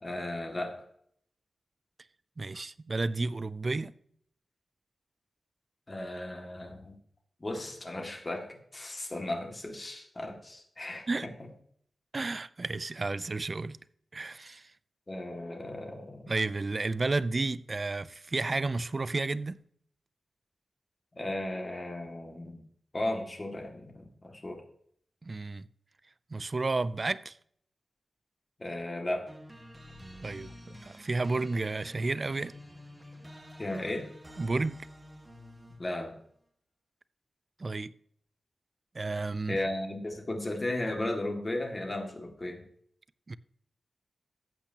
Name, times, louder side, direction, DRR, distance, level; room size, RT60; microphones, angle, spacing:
voice 1, 0.0-0.9 5.9-7.0 7.4-11.1 15.1-16.3 21.1-22.6 22.9-24.6 28.6-29.3 33.6-34.1 35.8-36.1 39.5-42.6, left 1 dB, 30° left, 2.2 m, -35 dB
voice 2, 2.4-3.9 11.1-11.3 12.1-13.8 14.1-14.7 16.3-19.6 25.2-25.7 26.3-27.4 30.2-32.5 34.4-34.9 37.6-37.9 38.9-39.6 43.3-43.4, right 3 dB, 35° right, 0.4 m, -32 dB
sound 1, 29.3-36.0, equal, 15° right, 1.5 m, -49 dB
14.0 x 8.3 x 2.9 m
wide cardioid pair, 110°, 0 cm